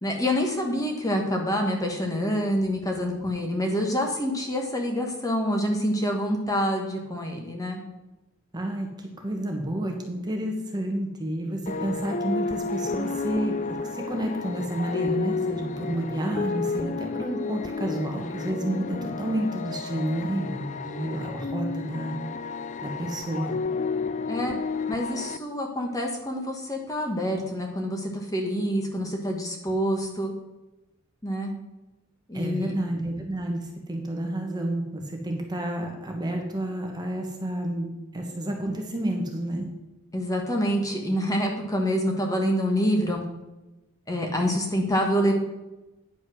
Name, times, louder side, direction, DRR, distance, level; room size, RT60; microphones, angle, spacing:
voice 1, 0.0-7.8 24.3-24.5 24.9-30.3 31.2-31.5 32.3-32.7 40.1-43.2 44.1-45.3, equal, 15° left, 1 dB, 1.2 m, -26 dB
voice 2, 8.5-22.2 22.8-23.5 32.3-39.7, right 1 dB, 20° right, 2 dB, 1.2 m, -30 dB
sound 1, 11.7-25.4, left 4 dB, 35° left, 0.4 m, -31 dB
9.7 x 5.3 x 6.2 m, 1.0 s
head